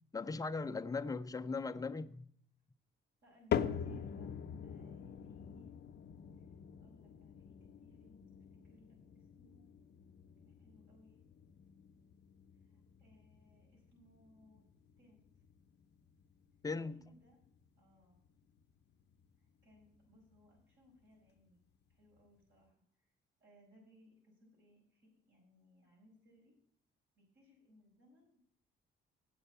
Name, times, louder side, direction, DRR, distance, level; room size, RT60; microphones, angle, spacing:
voice 1, 0.1-2.3 16.6-17.1, left 4 dB, 20° left, 0.6 m, -39 dB
voice 2, 3.2-5.7 6.4-6.5 6.8-9.7 10.4-11.2 12.6-14.6 15.0-15.2 16.9-17.4 17.8-18.2 19.4-21.6 21.9-23.1 23.4-26.6 27.2-28.4, equal, 70° right, 5.3 m, -65 dB
sound 1, 3.5-19.8 20.2-20.7 21.3-21.4 22.2-22.3, left 8 dB, 60° left, 0.7 m, -45 dB
8.3 x 7.8 x 6.8 m
cardioid pair, 90°, 20 cm